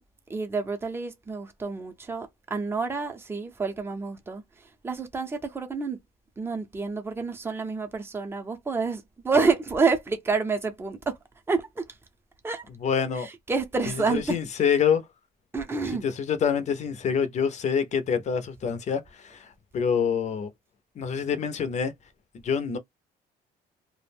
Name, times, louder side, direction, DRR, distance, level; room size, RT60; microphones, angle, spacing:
voice 1, 0.3-6.0 6.4-11.2 11.5-11.9 12.4-12.7 13.2-14.4 15.5-16.1, right 4 dB, 15° right, 0.6 m, -28 dB
voice 2, 12.8-13.3 13.9-15.1 16.0-20.5 21.0-21.9 22.4-22.8, left 7 dB, 45° left, 0.5 m, -26 dB
2.4 x 2.1 x 3.3 m
cardioid pair, 110°, 17 cm